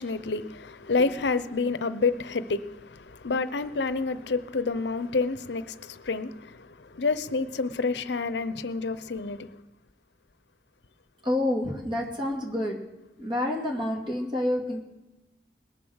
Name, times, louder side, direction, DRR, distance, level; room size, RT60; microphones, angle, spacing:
voice 1, 0.0-9.5, left 4 dB, 70° left, 0.7 m, -29 dB
voice 2, 11.2-12.8 13.2-14.8, left 1 dB, 30° right, 2.3 m, -28 dB
20.5 x 7.1 x 6.4 m
head